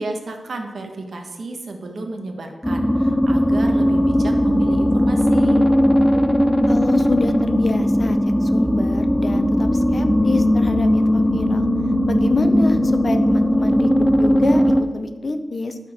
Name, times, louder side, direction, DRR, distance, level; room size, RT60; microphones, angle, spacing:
voice 1, 0.0-5.6, right 2 dB, 65° right, 3 dB, 1.3 m, -32 dB
sound 1, 2.6-14.8, equal, 5° left, 0.5 m, -18 dB
voice 2, 6.7-11.7 12.1-15.8, left 2 dB, 40° left, 8 dB, 0.7 m, -26 dB
12.0 x 4.3 x 6.4 m, 1.2 s
wide cardioid pair, 150°, 0 cm